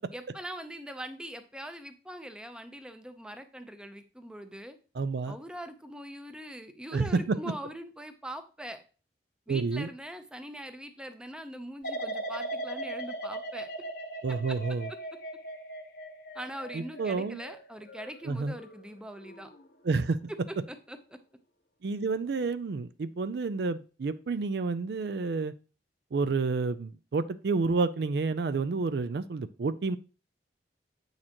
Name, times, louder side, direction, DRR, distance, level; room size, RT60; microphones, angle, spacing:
voice 1, 0.1-4.8 5.3-8.8 9.5-13.7 14.3-14.6 16.3-19.5 20.5-21.2, equal, 5° right, 8 dB, 0.6 m, -42 dB
voice 2, 4.9-5.4 6.9-7.4 9.5-9.9 14.2-14.9 16.7-17.4 18.2-18.6 19.8-20.2 21.8-25.5 26.1-30.0, right 4 dB, 60° right, 14 dB, 0.4 m, -29 dB
sound 1, 11.8-18.8 19.2-19.6, right 1 dB, 55° left, 1.1 m, -39 dB
8.6 x 6.5 x 2.9 m, 0.34 s
head